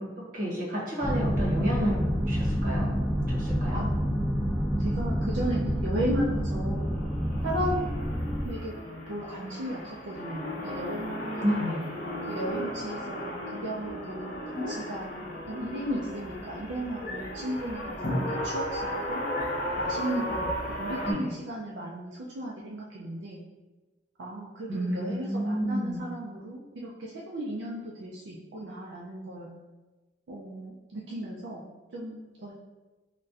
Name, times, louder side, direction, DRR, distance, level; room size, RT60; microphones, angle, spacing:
voice 1, 0.3-2.9 3.3-3.8 11.4-11.9 21.1-21.3 24.7-26.0, equal, 50° right, -5 dB, 0.9 m, -30 dB
sound 1, 1.0-8.5, equal, 5° left, 0.3 m, -28 dB
voice 2, 3.7-4.2 4.8-6.9 7.4-8.8 9.1-11.5 12.3-19.2 19.8-23.4 24.2-29.5 30.3-31.6 31.9-32.5, right 1 dB, 80° right, -4 dB, 0.4 m, -35 dB
sound 2, 6.9-21.1, equal, 50° left, 0.7 m, -35 dB
3.9 x 2.2 x 2.4 m, 1.2 s
head